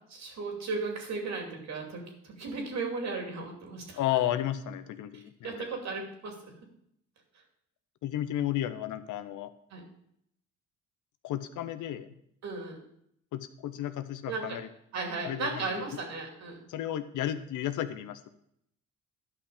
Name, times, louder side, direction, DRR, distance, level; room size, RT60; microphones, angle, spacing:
voice 1, 0.1-4.0 5.1-6.4 9.7-9.8 12.4-12.8 14.3-14.6 14.9-16.6, right 3 dB, 65° right, 1 dB, 2.7 m, -36 dB
voice 2, 4.0-5.7 8.0-9.5 11.2-12.1 13.3-14.7 15.2-15.9 16.7-18.3, left 12 dB, 80° left, 12 dB, 0.8 m, -33 dB
11.0 x 5.7 x 5.0 m, 0.73 s
cardioid pair, 90°, 30 cm